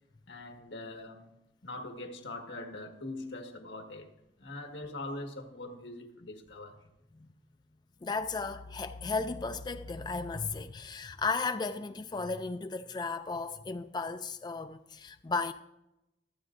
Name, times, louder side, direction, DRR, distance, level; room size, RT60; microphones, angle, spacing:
voice 1, 0.3-1.3 1.6-4.1 4.4-6.8, left 2 dB, 90° left, 1.6 m, -42 dB
voice 2, 8.0-15.5, left 4 dB, 25° left, 0.3 m, -35 dB
25.0 x 8.5 x 2.6 m
head